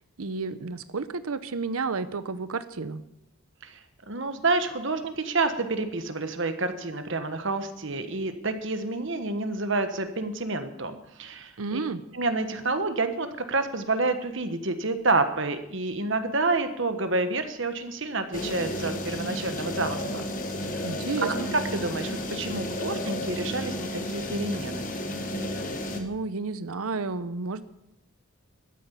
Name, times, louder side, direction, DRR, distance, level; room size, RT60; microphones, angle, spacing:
voice 1, 0.2-3.0 11.6-12.0 20.8-21.5 25.9-27.6, right 4 dB, 80° right, 13 dB, 0.8 m, -31 dB
voice 2, 4.1-11.8 12.1-20.3 20.6-20.8 21.2-21.3 21.7-24.9, right 3 dB, 55° right, 8 dB, 1.3 m, -29 dB
sound 1, 18.3-26.0, left 1 dB, 40° left, 1.6 m, -32 dB
12.5 x 9.6 x 8.2 m, 0.85 s
head